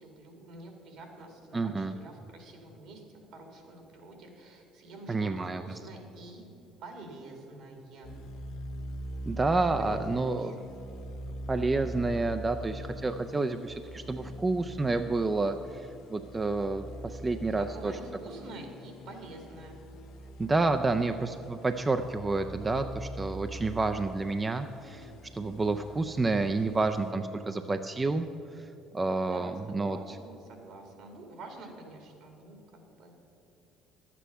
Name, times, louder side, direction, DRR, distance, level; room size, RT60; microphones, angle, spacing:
voice 1, 0.0-6.4 6.8-8.1 9.8-10.6 17.4-19.8 29.2-33.2, right 2 dB, 70° right, 3 dB, 2.2 m, -47 dB
voice 2, 1.5-2.0 5.1-5.6 9.3-10.6 11.5-17.9 20.4-28.2 28.9-30.0, right 3 dB, 25° right, 7 dB, 0.5 m, -29 dB
sound 1, 8.0-27.1, right 1 dB, 70° left, 0.9 m, -43 dB
11.0 x 8.4 x 5.6 m, 2.9 s
supercardioid pair, 70°, 0 cm